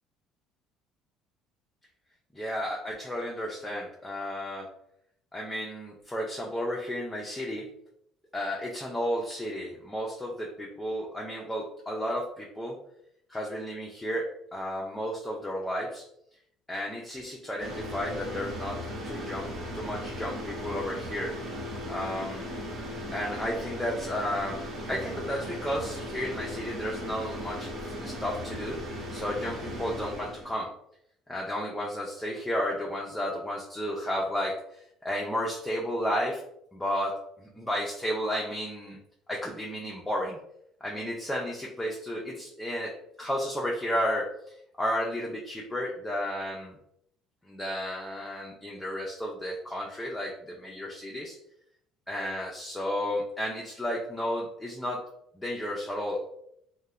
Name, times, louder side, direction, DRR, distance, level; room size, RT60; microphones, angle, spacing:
voice 1, 2.3-4.7 5.3-7.7 8.3-12.8 13.3-16.0 16.7-21.4 21.9-22.5 23.1-24.6 24.9-27.7 28.0-28.8 29.1-30.7 31.3-36.4 36.7-39.0 39.3-40.4 40.8-46.8 47.5-51.4 52.1-55.0 55.4-56.3, equal, 10° left, -3 dB, 0.3 m, -33 dB
sound 1, 17.6-30.6, equal, 50° right, 0.7 m, -37 dB
2.9 x 2.0 x 2.3 m, 0.73 s
cardioid pair, 145°, 0 cm